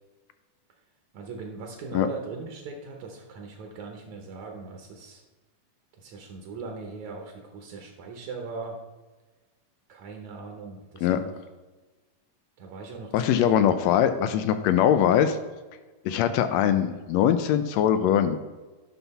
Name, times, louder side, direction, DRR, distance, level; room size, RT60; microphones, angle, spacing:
voice 1, 1.1-5.2 6.0-8.8 9.9-11.4 12.6-13.8, right 4 dB, 70° right, 2 dB, 2.2 m, -39 dB
voice 2, 13.1-15.4 16.0-18.4, left 9 dB, 80° left, 10 dB, 1.6 m, -22 dB
11.0 x 5.7 x 4.2 m, 1.3 s
omnidirectional pair, 3.5 m